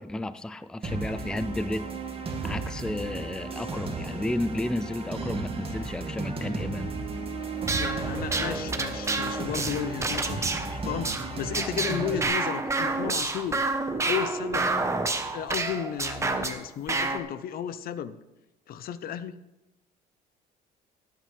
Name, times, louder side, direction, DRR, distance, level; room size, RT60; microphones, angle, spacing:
voice 1, 0.0-1.9 2.4-6.9, left 1 dB, 5° left, 13 dB, 0.4 m, -32 dB
sound 1, 0.8-12.2, right 3 dB, 35° right, 2.0 m, -34 dB
sound 2, 7.6-16.6 16.9-17.2, right 3 dB, 15° right, 1.1 m, -29 dB
voice 2, 7.8-13.6 14.1-15.0 15.2-18.2 18.7-19.5, left 9 dB, 60° left, 14 dB, 0.7 m, -34 dB
18.0 x 9.1 x 3.4 m, 0.99 s
cardioid pair, 110°, 17 cm